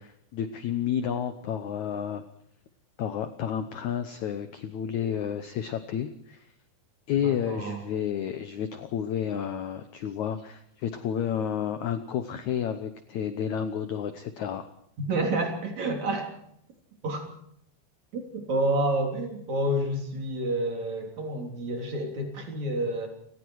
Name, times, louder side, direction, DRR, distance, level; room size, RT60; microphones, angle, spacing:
voice 1, 0.3-2.2 3.0-6.5 7.1-14.7, left 9 dB, 80° left, 10 dB, 1.7 m, -31 dB
voice 2, 7.2-7.8 15.0-16.3 17.0-17.2 18.1-23.1, right 1 dB, 45° right, 3 dB, 4.5 m, -29 dB
30.0 x 18.5 x 4.7 m, 0.73 s
omnidirectional pair, 4.8 m